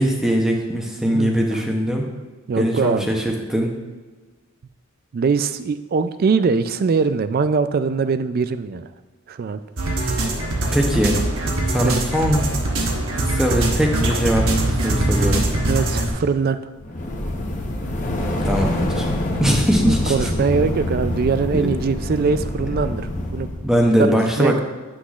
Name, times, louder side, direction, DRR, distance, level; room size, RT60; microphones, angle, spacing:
voice 1, 0.0-2.0 2.6-3.7 10.7-11.2 11.7-12.5 13.2-15.5 18.4-19.1 19.4-20.3 21.5-21.7 23.6-24.6, equal, ahead, 0 dB, 0.6 m, -21 dB
voice 2, 2.5-3.2 5.1-8.9 9.3-9.6 11.8-11.9 15.7-16.6 19.8-23.5 24.4-24.6, right 5 dB, 45° right, 12 dB, 0.3 m, -22 dB
sound 1, 9.8-16.1, right 1 dB, 65° right, 1.1 m, -22 dB
sound 2, 16.8-23.8, left 1 dB, 35° left, 0.8 m, -26 dB
9.6 x 6.1 x 2.4 m, 1.3 s
head